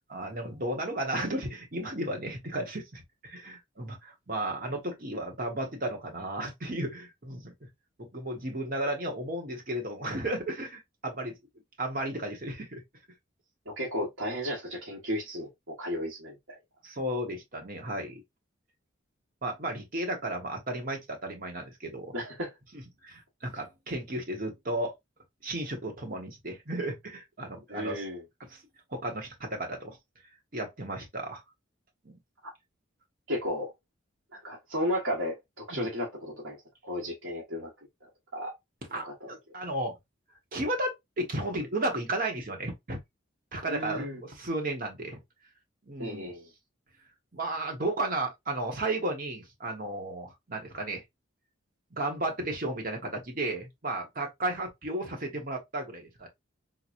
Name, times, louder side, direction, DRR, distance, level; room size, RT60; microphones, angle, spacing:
voice 1, 0.1-7.7 8.0-11.3 11.8-12.8 16.8-18.2 19.4-22.1 22.7-24.9 25.4-28.0 28.5-28.6 28.9-30.0 30.5-31.4 32.0-32.2 35.7-35.9 38.9-39.9 40.5-43.0 43.5-45.2 45.9-46.3 47.3-51.0 51.9-56.3, right 1 dB, 45° right, 1.1 m, -34 dB
voice 2, 13.8-15.5 15.8-16.3 22.1-22.5 27.7-28.2 33.3-33.7 34.3-36.6 36.8-37.7 38.3-38.5 39.0-39.1 43.7-44.2 46.0-46.5, equal, 75° right, 1.3 m, -33 dB
3.8 x 3.0 x 2.5 m
head